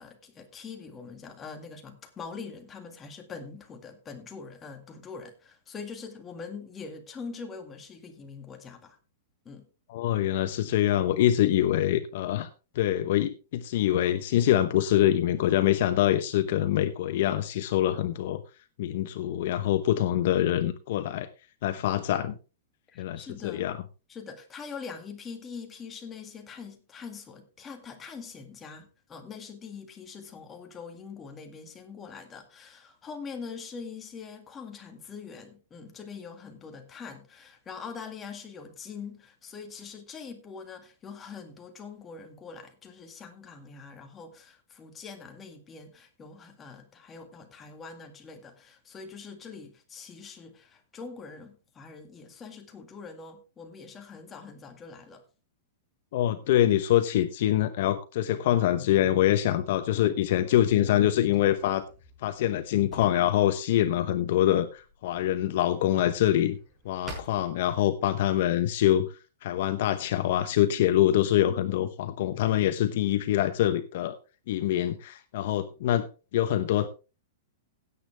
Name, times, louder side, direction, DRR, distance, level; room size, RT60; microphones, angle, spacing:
voice 1, 0.0-9.0 9.5-9.7 22.9-23.7 24.1-55.2, left 5 dB, 15° left, 2.0 m, -43 dB
voice 2, 9.9-12.5 12.7-18.4 18.8-21.3 21.6-22.4 23.0-23.8 56.1-61.8 62.2-66.6 66.8-69.1 69.4-74.2 74.5-76.1 76.3-76.9, left 12 dB, 55° left, 0.9 m, -25 dB
Drawer open or close, 59.6-68.2, right 2 dB, 10° right, 5.5 m, -51 dB
16.5 x 8.3 x 3.4 m
supercardioid pair, 165°, 0 cm